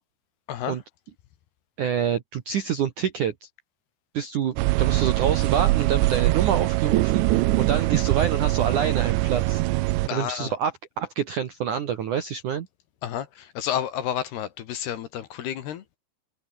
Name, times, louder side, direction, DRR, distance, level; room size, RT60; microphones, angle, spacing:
voice 1, 1.8-3.5 4.1-9.6 10.1-10.7 11.0-12.7, right 8 dB, 65° right, 2.0 m, -27 dB
sound 1, 4.6-10.1, right 20 dB, 80° right, 2.7 m, -22 dB
voice 2, 10.1-10.5 13.0-15.8, left 10 dB, 65° left, 3.2 m, -30 dB
omnidirectional pair, 5.7 m